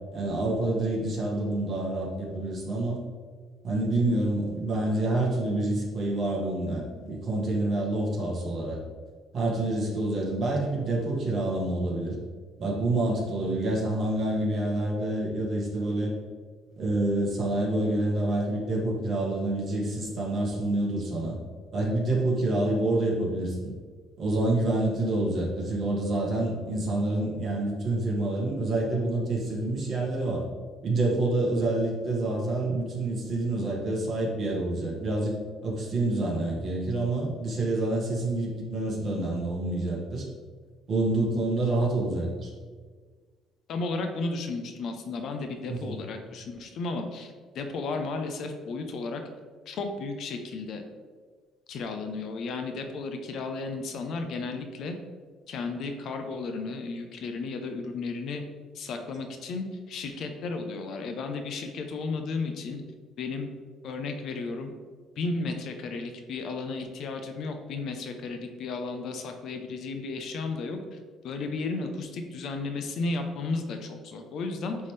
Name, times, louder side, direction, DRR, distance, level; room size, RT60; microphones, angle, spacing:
voice 1, 0.1-3.0 3.6-8.8 9.3-12.2 12.6-16.1 16.8-21.4 21.7-23.7 24.2-30.4 30.8-35.4 35.6-40.3 40.9-42.5 45.7-46.0, right 2 dB, 40° right, -3 dB, 1.8 m, -27 dB
voice 2, 43.7-49.2 49.7-50.8 51.7-54.9 55.5-58.4 58.7-62.8 63.2-63.5 63.8-64.7 65.2-71.0 71.2-74.8, left 3 dB, 55° left, 5 dB, 0.7 m, -34 dB
9.7 x 3.6 x 3.3 m, 1.5 s
cardioid pair, 150°, 0 cm